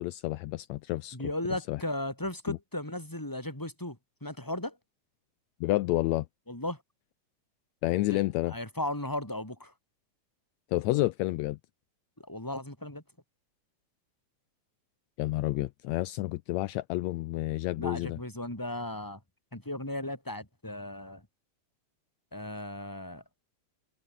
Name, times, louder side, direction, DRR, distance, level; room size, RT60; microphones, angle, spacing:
voice 1, 0.0-1.2 1.7-1.8 2.5-2.6 5.6-6.3 7.8-8.5 10.7-11.6 15.2-18.2, left 18 dB, 80° left, 1.8 m, -29 dB
voice 2, 1.1-4.8 6.5-6.8 8.1-8.2 8.5-9.7 12.3-13.0 17.8-19.2 19.5-21.2 22.3-23.2, left 1 dB, 5° left, 4.6 m, -36 dB
omnidirectional pair, 3.4 m